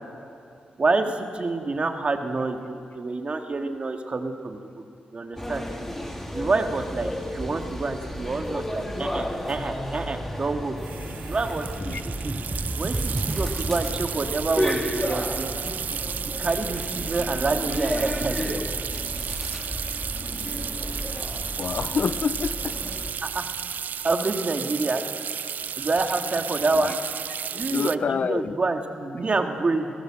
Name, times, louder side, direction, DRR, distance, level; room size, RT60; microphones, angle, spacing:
voice 1, 0.8-4.6 5.1-5.6 6.3-10.8 11.3-12.4 12.8-15.5 15.9-16.0 16.4-18.6 23.2-23.4 24.0-25.1 25.8-27.0 27.5-29.9, right 3 dB, 40° right, 5 dB, 2.0 m, -27 dB
sound 1, 5.4-23.1, equal, 10° left, 2.8 m, -33 dB
sound 2, 8.8-8.9 9.1-9.4 10.8-28.0, right 8 dB, 70° right, 0.4 m, -33 dB
sound 3, 9.5-18.1, right 2 dB, 15° right, 0.9 m, -35 dB
voice 2, 21.6-22.8 26.7-27.1 27.5-28.6, left 6 dB, 60° left, 17 dB, 0.4 m, -28 dB
23.5 x 16.5 x 7.6 m, 2.4 s
cardioid pair, 80°, 3 cm